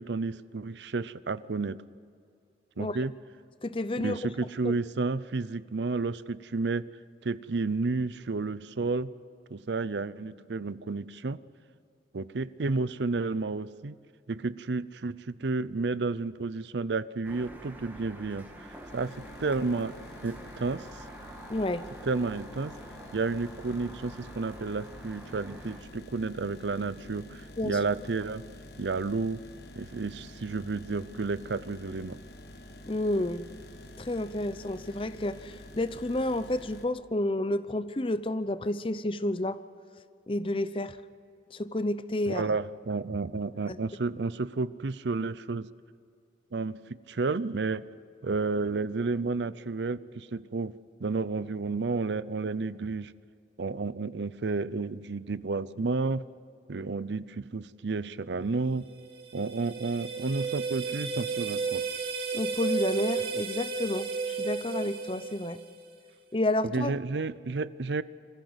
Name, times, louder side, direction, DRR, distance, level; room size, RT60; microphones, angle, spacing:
voice 1, 0.0-1.8 2.8-3.1 4.0-6.9 7.2-9.1 9.5-11.4 12.1-14.0 14.3-18.7 18.9-21.0 22.0-22.7 23.1-28.5 28.8-29.4 29.8-32.2 42.3-45.7 46.5-47.8 48.2-50.7 51.0-53.1 53.6-56.2 56.7-58.9 59.3-61.8 66.7-68.0, right 3 dB, 80° right, 17 dB, 0.6 m, -31 dB
voice 2, 3.6-4.7 21.5-21.8 27.6-27.8 32.9-33.5 34.0-39.6 40.3-41.0 41.5-42.4 43.7-43.8 62.3-65.6 66.3-66.9, left 1 dB, 30° left, 13 dB, 0.7 m, -30 dB
sound 1, 17.2-25.8, right 1 dB, 10° right, 1.9 m, -47 dB
sound 2, 18.4-36.9, left 1 dB, 65° left, 1.5 m, -48 dB
sound 3, 58.9-65.9, right 5 dB, 60° right, 2.5 m, -33 dB
25.5 x 15.0 x 8.0 m, 2.3 s
head